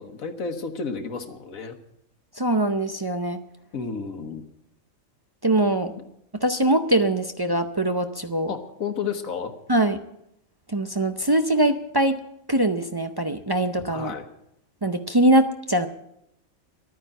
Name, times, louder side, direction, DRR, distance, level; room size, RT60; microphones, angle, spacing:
voice 1, 0.0-1.8 3.7-4.4 5.9-6.0 8.5-9.5 13.9-14.3, left 5 dB, 85° left, 6 dB, 1.6 m, -32 dB
voice 2, 2.4-3.4 5.4-5.9 6.3-8.5 9.7-10.0 10.7-12.2 12.5-14.1 14.8-15.9, right 1 dB, 35° right, 7 dB, 0.4 m, -22 dB
11.5 x 9.6 x 8.9 m, 0.79 s
omnidirectional pair, 1.4 m